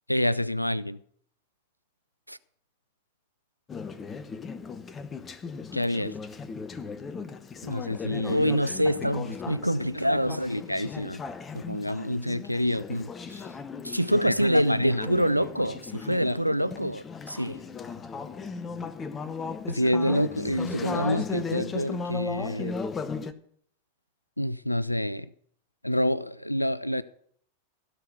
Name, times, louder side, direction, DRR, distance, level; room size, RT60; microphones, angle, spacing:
voice 1, 0.1-1.0 5.7-6.1 7.6-8.5 9.9-11.2 11.5-13.4 14.1-15.1 16.2-16.4 19.7-22.7 24.4-25.3 25.8-27.0, left 1 dB, 85° left, 0.4 m, -28 dB
Conversation / Chatter, 3.7-23.3, left 5 dB, 20° left, 0.8 m, -37 dB
voice 2, 8.3-10.6 13.8-17.6, equal, 90° right, 0.4 m, -26 dB
16.5 x 5.8 x 7.8 m
figure-of-eight pair, 90°, 0 cm